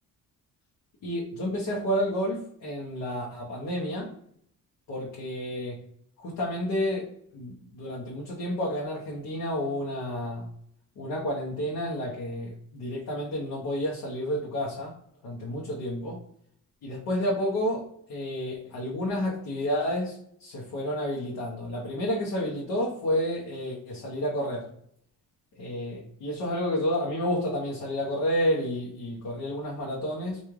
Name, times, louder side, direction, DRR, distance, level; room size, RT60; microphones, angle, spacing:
voice 1, 1.0-4.1 4.9-5.8 6.2-7.1 7.3-10.5 11.0-14.9 15.2-16.2 16.8-17.8 18.1-20.1 20.4-24.6 25.6-30.4, equal, 70° left, -4 dB, 1.0 m, -30 dB
3.2 x 2.6 x 3.5 m, 0.69 s
cardioid pair, 155°, 34 cm